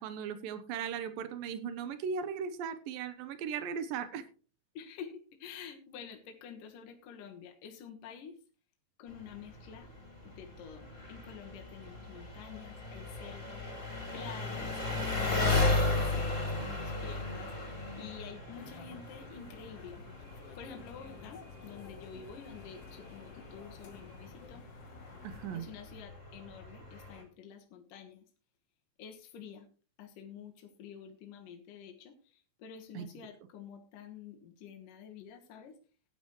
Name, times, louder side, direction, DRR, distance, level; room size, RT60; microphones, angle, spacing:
voice 1, 0.0-4.2 25.2-25.7 32.9-33.1, right 7 dB, 90° right, 11 dB, 2.8 m, -37 dB
voice 2, 4.7-8.4 9.0-9.9 10.2-13.9 14.1-20.0 20.6-24.7 25.5-28.2 29.0-29.7 30.0-35.8, left 7 dB, 75° left, 2 dB, 3.0 m, -49 dB
Engine, 9.1-27.2, left 3 dB, 25° left, 2.9 m, -36 dB
sound 1, 18.5-25.6, left 6 dB, 60° left, 1.8 m, -53 dB
16.0 x 10.0 x 3.1 m, 0.37 s
omnidirectional pair, 3.9 m